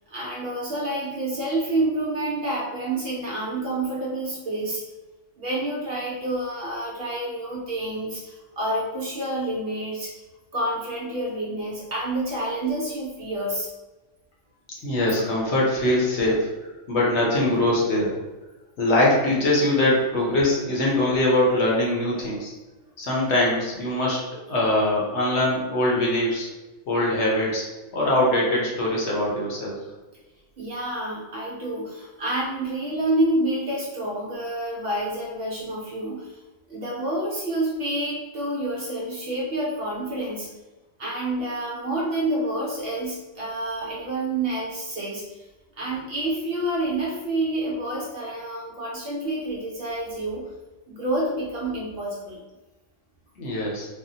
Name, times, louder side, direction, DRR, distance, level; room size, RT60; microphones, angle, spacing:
voice 1, 0.1-4.8 5.4-10.1 10.5-13.7 30.6-36.4 36.7-40.5 41.0-45.4 45.8-50.5 50.9-52.4, right 1 dB, 60° right, -4 dB, 0.7 m, -28 dB
voice 2, 14.8-16.5 16.9-18.1 18.8-22.5 23.0-24.2 24.5-26.5 26.9-27.6 27.9-29.8 53.4-53.9, left 1 dB, 60° left, -4 dB, 1.0 m, -22 dB
3.4 x 2.0 x 2.6 m, 1.2 s
omnidirectional pair, 1.3 m